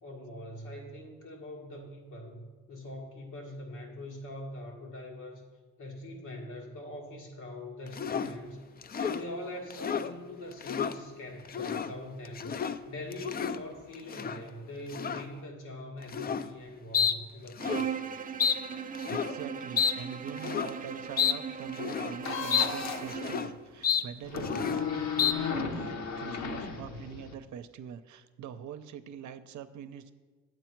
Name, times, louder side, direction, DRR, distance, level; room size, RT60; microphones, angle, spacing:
voice 1, 0.0-5.4 5.8-8.6 8.9-18.0, left 1 dB, 85° left, -1 dB, 1.9 m, -43 dB
sound 1, 7.9-8.3 8.8-9.2 9.7-10.1 10.5-10.9 11.4-11.9 12.2-12.8 13.1-13.6 14.1-14.4 14.9-15.2 16.1-16.5 16.9-17.2 17.5-17.9 18.4-18.6 18.9-19.4 19.8-19.9 20.4-20.7 21.2-21.4 21.7-22.2 22.5-22.7 23.0-23.5 23.8-24.0 24.4-24.8 25.2-25.3, left 7 dB, 30° left, 0.4 m, -30 dB
Bowed string instrument, 17.6-23.6, right 7 dB, 30° right, 0.4 m, -38 dB
voice 2, 19.1-30.1, right 8 dB, 70° right, 11 dB, 0.7 m, -44 dB
sound 2, 22.2-23.2 24.2-27.3, left 5 dB, 65° left, 1.1 m, -34 dB
8.8 x 7.9 x 4.6 m, 1.4 s
cardioid pair, 90°, 30 cm